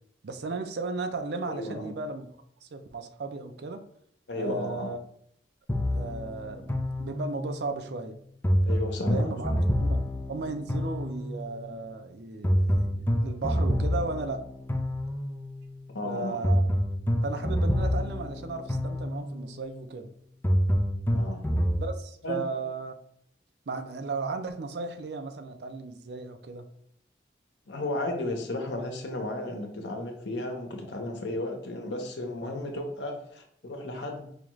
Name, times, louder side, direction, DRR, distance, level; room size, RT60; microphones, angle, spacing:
voice 1, 0.2-2.3 2.6-3.8 4.4-5.0 5.9-8.2 9.1-9.5 9.8-10.0 10.3-14.4 16.0-16.6 17.2-20.1 21.8-22.9 23.7-26.6, right 3 dB, 65° right, 8 dB, 0.4 m, -35 dB
voice 2, 1.5-2.0 4.3-4.9 8.6-9.6 15.9-16.4 21.1-21.4 22.2-22.4 27.7-34.3, left 2 dB, 85° left, 3 dB, 0.8 m, -34 dB
sound 1, 5.7-7.6 8.4-11.5 12.4-15.5 16.4-19.5 20.4-21.8, equal, 10° left, 0.4 m, -27 dB
4.8 x 2.4 x 3.0 m, 0.69 s
head